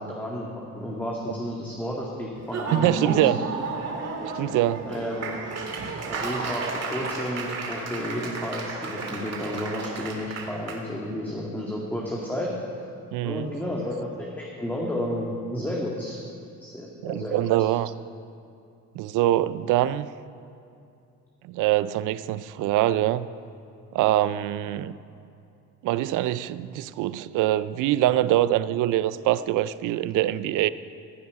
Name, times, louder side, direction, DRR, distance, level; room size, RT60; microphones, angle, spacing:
voice 1, 0.0-3.5 4.9-5.3 6.1-12.5 13.2-16.2 16.6-17.7, equal, 5° left, -4 dB, 2.0 m, -32 dB
Laughter / Applause, 2.4-10.8, right 4 dB, 60° right, 2.1 m, -33 dB
voice 2, 2.7-3.4 4.3-4.9 13.1-13.5 17.0-17.9 19.0-20.1 21.5-23.3 23.9-24.9 25.8-30.7, right 14 dB, 90° right, 15 dB, 0.5 m, -24 dB
16.0 x 5.5 x 9.5 m, 2.6 s
cardioid pair, 90°, 30 cm